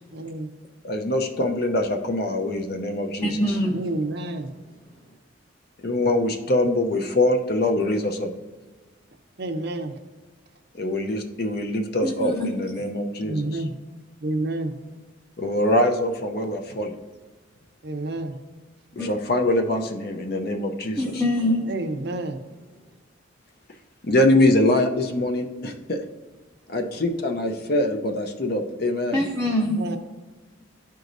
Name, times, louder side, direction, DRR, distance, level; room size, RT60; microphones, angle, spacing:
voice 1, 0.1-0.5 3.8-4.5 9.4-9.9 13.2-13.7 14.2-14.7 17.8-18.3 21.7-22.4 29.7-30.0, right 2 dB, 55° right, 5 dB, 0.6 m, -29 dB
voice 2, 0.8-3.3 5.8-8.3 10.8-13.6 15.4-16.9 18.9-21.0 24.0-26.0 26.7-29.2, left 1 dB, 50° left, 4 dB, 0.6 m, -23 dB
voice 3, 3.2-3.9 4.7-4.8 12.0-12.5 12.8-12.9 19.0-19.1 21.0-21.7 29.1-29.9, left 1 dB, 10° left, -1 dB, 0.6 m, -24 dB
12.5 x 4.7 x 2.6 m, 1.3 s
head